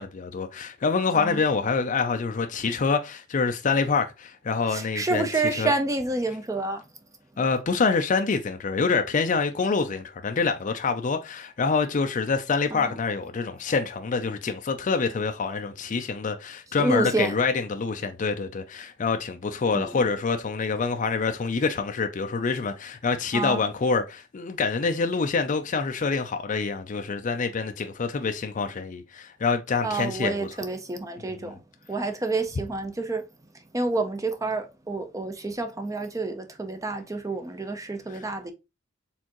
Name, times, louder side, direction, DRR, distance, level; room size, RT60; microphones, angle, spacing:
voice 1, 0.0-5.3 5.6-5.7 7.4-30.5, left 4 dB, 40° left, 0.4 m, -26 dB
voice 2, 4.7-6.8 12.7-13.0 16.8-17.4 19.7-20.0 23.3-23.7 29.8-31.6 31.9-33.2 33.7-38.5, right 2 dB, 15° right, 0.6 m, -28 dB
4.4 x 3.7 x 2.9 m
head